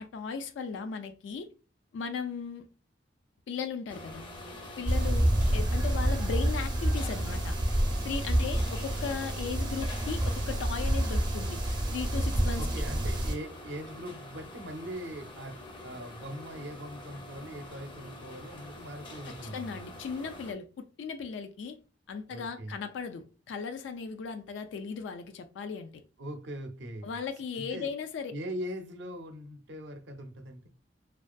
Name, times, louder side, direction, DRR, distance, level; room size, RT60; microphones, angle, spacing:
voice 1, 0.0-1.5 1.9-2.7 3.5-4.2 4.8-7.5 8.0-12.7 19.4-21.8 22.1-25.9 27.0-28.3, left 5 dB, 90° left, 0.3 m, -37 dB
sound 1, 3.9-20.5, left 1 dB, 25° left, 0.5 m, -46 dB
sound 2, 4.8-13.3, right 1 dB, 25° right, 0.5 m, -28 dB
voice 2, 4.9-5.3 8.3-8.7 12.6-19.8 22.3-22.7 26.2-27.1 27.6-27.9 28.3-30.7, equal, 75° right, 0.5 m, -41 dB
2.5 x 2.3 x 2.2 m
head